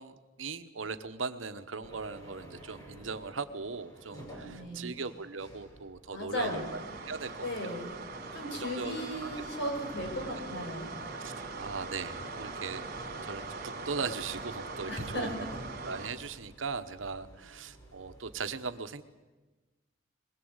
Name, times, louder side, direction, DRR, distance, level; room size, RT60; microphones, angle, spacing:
voice 1, 0.0-6.8 7.1-7.8 8.5-8.9 9.2-9.3 10.4-10.5 11.2-12.9 13.2-15.5 15.8-19.0, right 4 dB, 75° right, 10 dB, 1.1 m, -39 dB
sound 1, 1.8-18.5, right 1 dB, 20° left, 6.1 m, -53 dB
voice 2, 4.4-4.9 6.1-6.7 7.4-7.9 8.3-10.9 14.9-15.3, equal, 65° left, 2 dB, 5.9 m, -36 dB
sound 2, 6.4-16.1, right 3 dB, 50° right, 3.3 m, -41 dB
21.5 x 20.5 x 8.1 m, 1.2 s
head